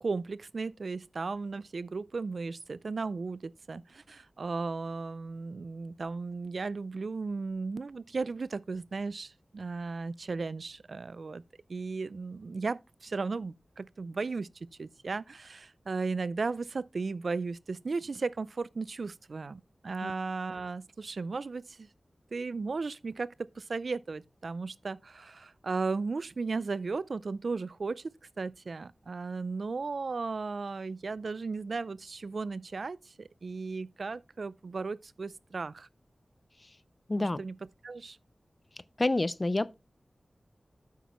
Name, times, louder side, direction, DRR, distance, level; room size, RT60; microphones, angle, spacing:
voice 1, 0.0-11.4 11.7-14.5 14.8-21.9 22.3-28.1 28.4-35.9 37.2-37.5 37.8-38.2, right 4 dB, 65° right, 0.4 m, -35 dB
voice 2, 37.1-37.4 39.0-39.7, left 2 dB, 30° left, 0.4 m, -28 dB
9.2 x 8.2 x 3.0 m
wide cardioid pair, 95°, 0 cm